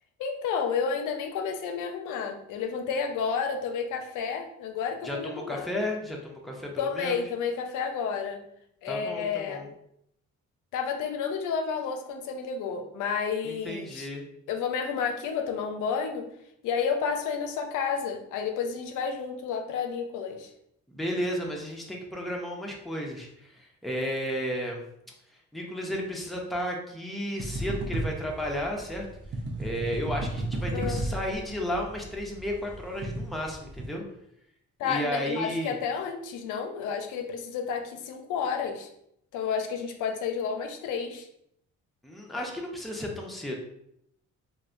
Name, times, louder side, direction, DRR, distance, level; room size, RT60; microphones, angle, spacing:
voice 1, 0.2-5.7 6.8-8.4 8.8-9.6 10.7-14.1 14.5-16.3 16.6-20.5 30.7-31.0 34.8-38.9 39.3-41.3, left 6 dB, 85° left, 5 dB, 0.5 m, -31 dB
voice 2, 5.0-7.2 8.9-9.7 13.4-14.3 20.9-24.8 25.5-29.1 29.6-34.0 34.8-35.8 42.0-43.6, equal, ahead, -1 dB, 0.6 m, -33 dB
sound 1, 27.4-33.9, right 1 dB, 40° right, 0.7 m, -34 dB
3.2 x 2.1 x 2.5 m, 0.76 s
cardioid pair, 90°, 30 cm